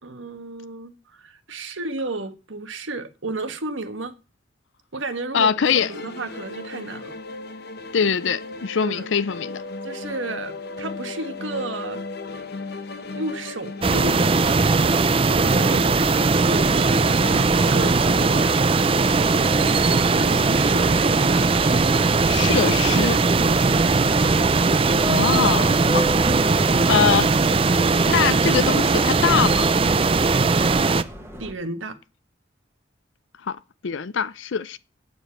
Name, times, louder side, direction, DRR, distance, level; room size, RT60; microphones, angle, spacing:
voice 1, 0.0-4.1 4.9-5.5 5.9-7.1 8.8-9.1 9.8-12.0 13.0-14.8 15.3-16.0 17.4-18.6 20.0-21.3 31.4-32.0, right 2 dB, 85° right, 1.4 m, -33 dB
voice 2, 5.3-5.9 7.9-9.6 17.2-17.5 22.2-23.2 25.1-26.1 26.9-27.3 28.1-29.7 33.4-33.6 33.8-34.8, left 6 dB, 75° left, 0.5 m, -23 dB
sound 1, 5.7-21.4, left 3 dB, 55° left, 1.0 m, -37 dB
sound 2, 13.8-31.0, right 3 dB, 30° right, 0.5 m, -19 dB
Subway metro underground, 19.1-31.5, equal, 15° right, 1.5 m, -35 dB
9.1 x 7.2 x 6.0 m
head